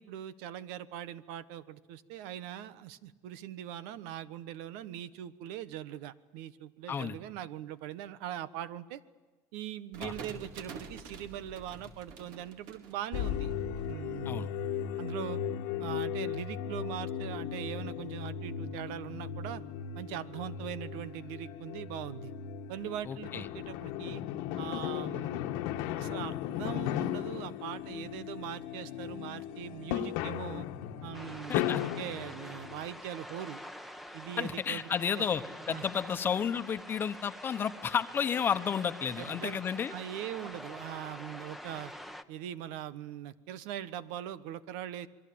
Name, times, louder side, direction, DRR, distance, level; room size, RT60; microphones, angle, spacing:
voice 1, 0.0-9.0 9.5-13.5 13.9-14.5 15.0-15.4 15.8-19.6 19.9-22.3 22.7-24.2 24.6-25.5 26.0-30.7 31.0-33.6 34.1-34.9 35.2-35.3 35.7-35.8 39.2-41.9 42.3-45.1, right 11 dB, 85° right, 15 dB, 1.3 m, -41 dB
sound 1, 9.9-13.8, right 4 dB, 70° right, 4.4 m, -47 dB
sound 2, 13.1-33.0, left 10 dB, 85° left, 1.6 m, -36 dB
voice 2, 23.1-23.5 31.5-31.8 34.4-39.9, left 7 dB, 25° left, 10 dB, 1.1 m, -32 dB
sound 3, 31.1-42.2, equal, ahead, 1.1 m, -46 dB
27.0 x 22.5 x 8.7 m, 1.3 s
cardioid pair, 150°, 8 cm